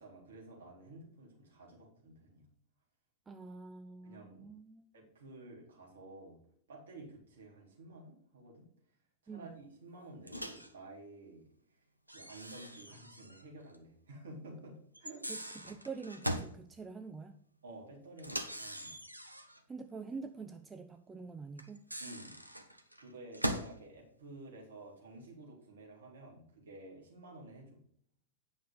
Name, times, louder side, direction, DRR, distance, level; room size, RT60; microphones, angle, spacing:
voice 1, 0.0-2.5 4.0-4.5 4.9-6.4 6.7-8.7 9.2-11.4 12.1-15.3 17.6-19.0 22.0-22.4 23.0-27.8, right 2 dB, 60° right, -1 dB, 3.7 m, -52 dB
voice 2, 3.3-4.9 9.3-9.4 15.3-17.3 19.7-21.8, right 4 dB, 15° right, 8 dB, 0.6 m, -46 dB
Microwave oven, 10.3-10.7 12.1-13.5 13.7-13.8 14.9-16.6 18.2-19.6 21.6-23.8, equal, 90° right, 0.8 m, -41 dB
9.3 x 6.1 x 5.2 m, 0.62 s
figure-of-eight pair, 90°, 0 cm